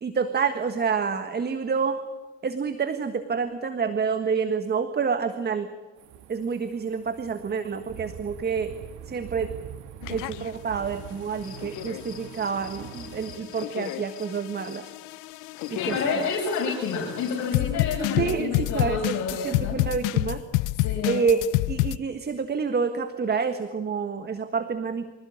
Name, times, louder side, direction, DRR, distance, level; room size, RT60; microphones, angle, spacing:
voice 1, 0.0-2.0 2.4-5.7 6.3-8.7 9.1-9.5 10.1-14.8 15.7-16.3 18.2-19.2 19.4-20.4 21.0-21.4 21.7-25.2, right 5 dB, 35° right, 9 dB, 1.6 m, -28 dB
sound 1, 6.0-13.4, right 10 dB, 70° right, 2.1 m, -43 dB
sound 2, 10.0-10.5 11.3-22.0, left 19 dB, 90° left, 0.6 m, -29 dB
sound 3, 11.3-18.3, left 8 dB, 45° left, 8.0 m, -51 dB
voice 2, 15.8-19.8 20.8-21.3, left 4 dB, 65° left, -1 dB, 5.8 m, -29 dB
26.0 x 16.0 x 8.7 m, 1.3 s
cardioid pair, 100°, 30 cm